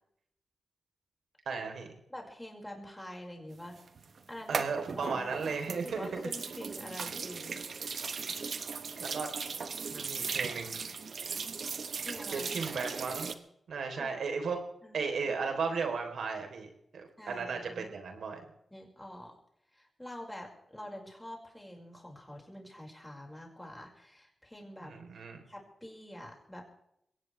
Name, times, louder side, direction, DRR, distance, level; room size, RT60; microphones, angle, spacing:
voice 1, 1.5-1.9 4.5-6.3 9.0-9.3 9.9-10.7 12.3-13.3 13.7-14.6 14.9-18.4 24.8-25.4, right 5 dB, 85° right, 4 dB, 3.9 m, -35 dB
voice 2, 2.1-3.8 4.3-4.7 5.0-5.3 5.7-8.0 12.0-12.7 14.0-14.2 14.8-15.0 15.2-15.7 17.2-18.0 18.7-19.4 19.7-25.0 25.5-26.6, left 1 dB, 10° left, 0 dB, 5.6 m, -46 dB
sound 1, 3.8-13.3, right 5 dB, 65° right, 1.3 m, -38 dB
22.5 x 18.0 x 3.4 m, 0.77 s
wide cardioid pair, 95°, 0 cm